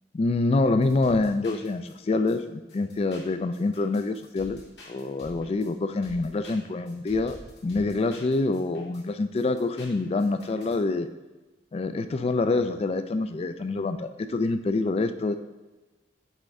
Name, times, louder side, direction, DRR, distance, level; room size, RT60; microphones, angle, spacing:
voice 1, 0.1-4.6 4.9-11.1 11.7-15.4, left 3 dB, 35° left, 10 dB, 0.3 m, -26 dB
sound 1, 0.8-2.4 2.7-5.7 6.0-9.0 9.4-10.8, left 1 dB, 65° left, 1.8 m, -48 dB
9.1 x 3.3 x 3.6 m, 1.2 s
head